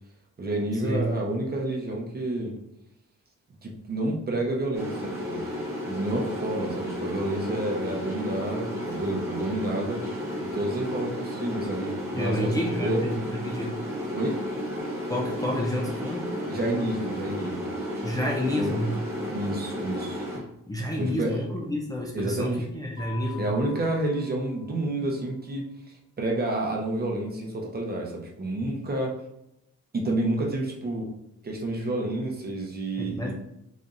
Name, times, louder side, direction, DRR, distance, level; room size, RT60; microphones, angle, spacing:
voice 1, 0.4-2.5 3.6-5.4 5.8-10.0 10.4-13.2 14.1-14.4 16.5-17.7 18.6-18.7 19.3-20.2 21.0-21.4 22.1-22.7 23.4-25.7 26.2-29.2 29.9-31.1 31.4-33.3, right 1 dB, 35° right, 0 dB, 0.8 m, -29 dB
sound 1, 4.7-20.4, equal, 10° right, 1.4 m, -33 dB
voice 2, 12.1-13.8 15.1-16.3 18.0-18.9 20.7-23.5 33.0-33.3, equal, 15° left, -2 dB, 0.5 m, -29 dB
Mallet percussion, 23.0-25.0, left 10 dB, 50° left, 1.0 m, -46 dB
4.1 x 3.5 x 2.5 m, 0.82 s
wide cardioid pair, 130°, 29 cm